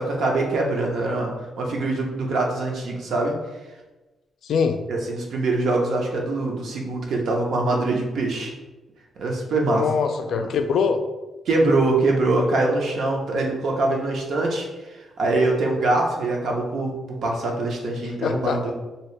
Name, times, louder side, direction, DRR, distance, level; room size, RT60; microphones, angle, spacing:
voice 1, 0.0-3.3 4.9-8.5 9.2-9.8 10.3-10.5 11.5-18.7, right 2 dB, 70° right, 0 dB, 0.7 m, -23 dB
voice 2, 4.4-4.8 9.7-11.0 18.2-18.6, left 6 dB, 75° left, 6 dB, 0.3 m, -23 dB
2.8 x 2.7 x 3.2 m, 1.1 s
cardioid pair, 135°, 0 cm